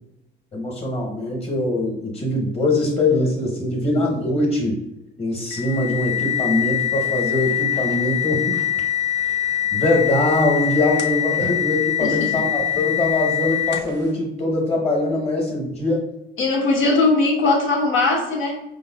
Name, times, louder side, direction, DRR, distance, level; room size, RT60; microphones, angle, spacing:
voice 1, 0.5-4.8 5.2-8.6 9.2-16.1, left 2 dB, 30° left, -1 dB, 1.2 m, -22 dB
sound 1, 5.5-14.0, left 11 dB, 60° left, 0.5 m, -23 dB
voice 2, 12.0-12.3 16.4-18.6, left 3 dB, 80° left, -2 dB, 1.1 m, -20 dB
4.9 x 2.3 x 2.3 m, 0.90 s
cardioid pair, 90°, 20 cm